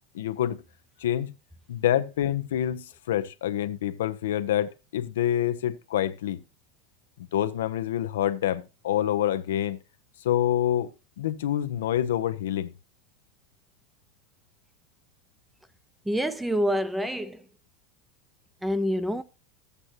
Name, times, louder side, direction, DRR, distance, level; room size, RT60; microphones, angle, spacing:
voice 1, 0.1-0.6 1.0-1.3 1.7-6.4 7.3-9.8 10.2-12.7, left 11 dB, 90° left, 0.7 m, -27 dB
voice 2, 16.0-17.5 18.6-19.2, equal, 5° right, 0.6 m, -27 dB
13.5 x 8.2 x 2.8 m
supercardioid pair, 135°, 0 cm